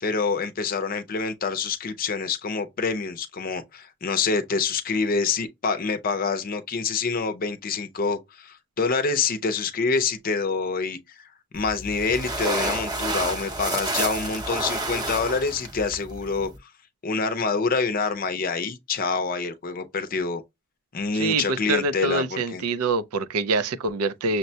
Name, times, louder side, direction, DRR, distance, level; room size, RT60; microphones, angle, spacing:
voice 1, 0.0-11.0 11.5-16.5 17.0-20.4 20.9-22.6, left 4 dB, 40° left, 0.5 m, -26 dB
sound 1, 11.5-16.6, right 2 dB, 20° right, 0.6 m, -30 dB
voice 2, 21.1-24.4, right 3 dB, 90° right, 0.5 m, -25 dB
6.4 x 2.1 x 2.7 m
head